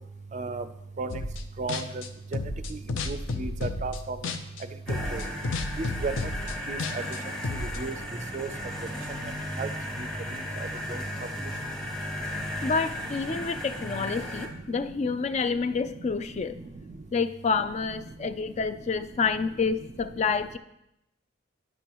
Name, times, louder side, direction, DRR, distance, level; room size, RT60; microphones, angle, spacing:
voice 1, 0.3-0.6 1.0-1.2 1.6-2.0 2.7-2.8 3.1-4.2 4.9-5.2 5.8-6.1 6.7-7.0 7.5-7.9 8.3-8.5 9.6-9.7 10.3-10.4 10.9-11.0, right 3 dB, 35° right, 11 dB, 0.4 m, -33 dB
sound 1, 1.1-1.4 1.7-4.6 4.9-7.8, left 2 dB, 75° left, 0.6 m, -32 dB
sound 2, 4.9-14.5, equal, 5° left, 1.1 m, -35 dB
voice 2, 12.6-16.6 17.1-20.6, left 5 dB, 35° left, 12 dB, 0.3 m, -28 dB
10.0 x 7.0 x 3.0 m, 0.84 s
head